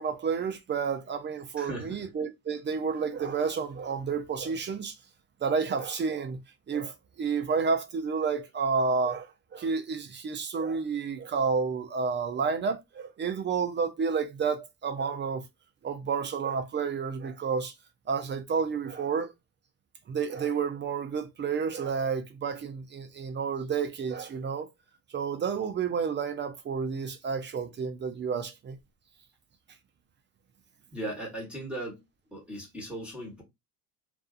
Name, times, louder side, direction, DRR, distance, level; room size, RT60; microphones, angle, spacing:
voice 1, 0.0-4.9 5.4-6.4 6.7-15.4 15.8-17.7 18.1-19.3 20.1-24.7 25.1-28.8, right 5 dB, 25° right, 0.5 m, -30 dB
voice 2, 1.6-2.0 30.9-32.0 32.3-33.4, right 1 dB, ahead, 1.3 m, -37 dB
2.6 x 2.4 x 2.4 m
hypercardioid pair, 75°, 46 cm